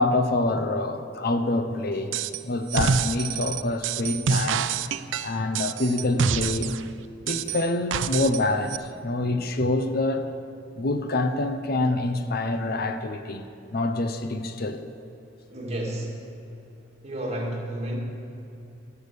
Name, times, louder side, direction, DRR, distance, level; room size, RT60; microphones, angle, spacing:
voice 1, 0.0-2.1 2.4-4.7 5.2-6.7 7.3-10.3 10.8-13.4 13.7-14.8, left 2 dB, 55° left, 8 dB, 0.7 m, -26 dB
sound 1, 2.1-2.4 2.7-6.8 7.3-8.4 8.7-8.8, right 6 dB, 85° right, 0.5 m, -27 dB
voice 2, 15.5-16.2 17.0-18.0, right 1 dB, 35° right, -1 dB, 2.1 m, -31 dB
17.0 x 6.9 x 6.8 m, 2.8 s
head